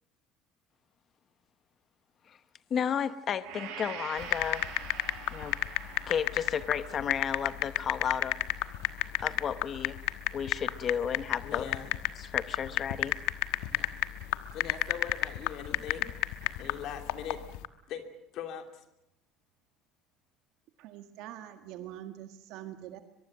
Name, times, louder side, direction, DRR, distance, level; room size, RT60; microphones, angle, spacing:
voice 1, 2.7-4.6 5.3-5.6 6.1-8.4 9.2-10.0 10.3-11.7 12.2-13.1, left 8 dB, 30° left, 12 dB, 0.9 m, -33 dB
Gong, 3.4-11.5, right 6 dB, 80° right, 6.5 m, -47 dB
sound 1, 4.2-17.7, left 17 dB, 85° left, 1.2 m, -31 dB
voice 2, 11.4-11.9 13.7-13.9 14.5-16.1 16.6-17.4 17.9-18.1 18.3-18.8, left 8 dB, 45° left, 6 dB, 2.9 m, -40 dB
voice 3, 20.8-23.0, right 12 dB, 60° right, 7 dB, 1.8 m, -44 dB
23.0 x 23.0 x 7.5 m, 0.81 s
cardioid pair, 180°, 0 cm